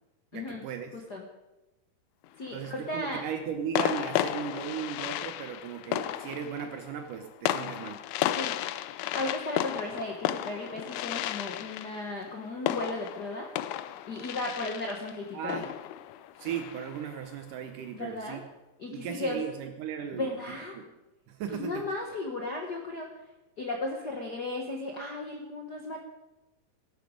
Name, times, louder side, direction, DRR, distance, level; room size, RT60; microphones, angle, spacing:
voice 1, 0.3-1.0 2.5-8.1 15.3-15.7 16.4-18.5 18.9-20.9 21.3-21.9, right 8 dB, 75° right, 6 dB, 2.4 m, -37 dB
sound 1, 2.2-2.8 3.7-17.2, left 12 dB, 80° left, 1.8 m, -34 dB
voice 2, 2.4-3.2 8.4-8.5 9.1-13.5 14.1-15.7 17.9-18.4 18.8-19.4 20.2-20.7 21.5-23.1 23.6-26.0, left 2 dB, 60° left, 1 dB, 1.0 m, -35 dB
16.0 x 11.5 x 5.2 m, 1.0 s
omnidirectional pair, 3.9 m